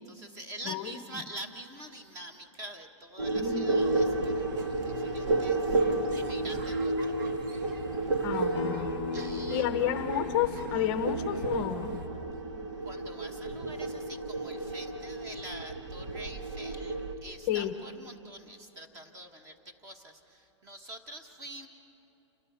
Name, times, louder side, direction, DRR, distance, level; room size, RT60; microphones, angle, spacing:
voice 1, 0.0-7.8 9.1-9.7 12.8-17.0 17.2-21.7, right 1 dB, 20° right, 7 dB, 1.3 m, -46 dB
voice 2, 0.7-1.0 3.3-3.7 8.2-8.9 9.5-12.0 17.5-17.7, left 10 dB, 25° left, 9 dB, 0.7 m, -31 dB
sound 1, 3.2-17.1, right 2 dB, 85° right, 2.1 m, -32 dB
sound 2, 3.8-12.1, right 2 dB, 40° right, 1.9 m, -45 dB
Acoustic guitar, 8.5-13.7, left 12 dB, 65° left, 0.6 m, -42 dB
28.5 x 25.0 x 5.6 m, 3.0 s
supercardioid pair, 170°, 16 cm